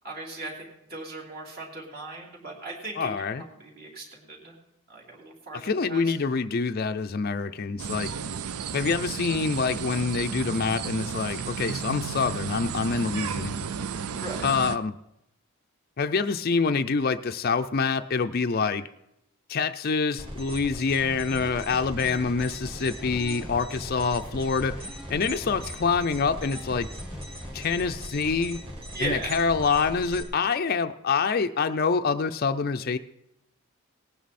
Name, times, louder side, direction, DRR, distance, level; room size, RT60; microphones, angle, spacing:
voice 1, 0.0-3.1 3.4-4.6 4.9-6.1 14.1-14.5 28.9-29.4, right 2 dB, 45° right, -2 dB, 3.0 m, -38 dB
voice 2, 3.0-3.4 5.5-8.1 8.7-13.5 14.4-14.9 16.0-18.9 19.5-24.7 25.1-26.9 27.5-28.6 29.0-33.0, left 5 dB, 45° left, 8 dB, 0.4 m, -26 dB
sound 1, 7.8-14.8, right 7 dB, 80° right, 0.5 m, -33 dB
sound 2, 20.2-30.2, equal, 25° right, 2.3 m, -39 dB
sound 3, 21.0-27.8, left 1 dB, 5° right, 1.3 m, -44 dB
18.5 x 9.4 x 4.2 m, 0.83 s
head